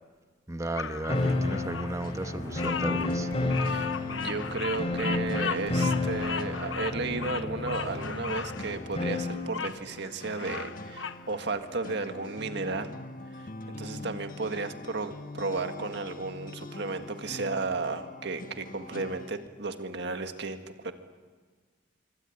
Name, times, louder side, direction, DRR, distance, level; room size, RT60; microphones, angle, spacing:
voice 1, 0.5-3.3, right 1 dB, 15° right, 9 dB, 1.1 m, -35 dB
Bird vocalization bird call bird song, 0.8-9.8 10.2-11.2, left 6 dB, 85° left, 1.0 m, -37 dB
sound 1, 1.1-9.5, left 2 dB, 35° left, 3.5 m, -31 dB
sound 2, 2.0-19.5, left 2 dB, 50° left, 1.4 m, -43 dB
voice 2, 3.6-12.9 13.4-20.9, right 3 dB, 65° right, 7 dB, 1.8 m, -34 dB
25.5 x 24.5 x 8.6 m, 1.5 s
head